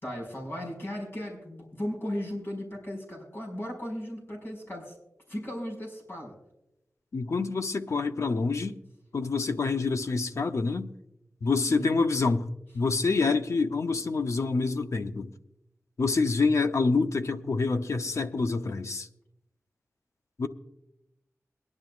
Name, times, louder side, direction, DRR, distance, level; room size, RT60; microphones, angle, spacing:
voice 1, 0.0-4.9 5.3-6.3 11.7-12.0, equal, 45° left, 5.3 m, -36 dB
voice 2, 7.1-8.8 9.1-10.9 11.4-12.5 12.7-15.3 16.0-19.1 20.4-20.5, left 4 dB, 65° left, 0.7 m, -27 dB
22.5 x 11.0 x 2.4 m
wide cardioid pair, 90°, 5 cm